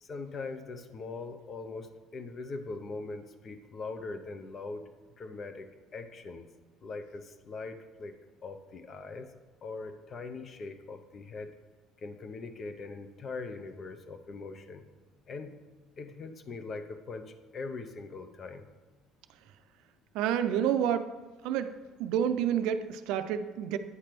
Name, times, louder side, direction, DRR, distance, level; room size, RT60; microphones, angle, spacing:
voice 1, 0.0-4.9 5.2-6.5 6.8-8.1 8.4-9.3 9.6-11.5 12.0-14.9 15.3-15.6 16.0-18.7, left 3 dB, 40° left, 9 dB, 0.7 m, -41 dB
voice 2, 20.1-21.1 21.4-21.7 22.0-23.8, right 9 dB, 80° right, 10 dB, 0.4 m, -29 dB
9.4 x 3.3 x 5.9 m, 1.4 s
cardioid pair, 110°, 0 cm